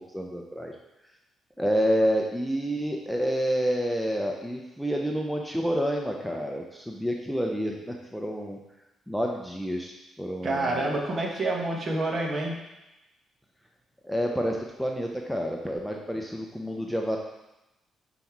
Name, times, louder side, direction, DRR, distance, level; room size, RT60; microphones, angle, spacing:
voice 1, 0.1-0.8 1.6-8.6 9.1-9.9 10.2-11.0 14.0-17.2, equal, ahead, 0 dB, 0.6 m, -28 dB
voice 2, 10.4-12.6, right 2 dB, 45° right, 0 dB, 1.3 m, -28 dB
5.6 x 4.1 x 4.6 m, 0.96 s
cardioid pair, 90°, 0 cm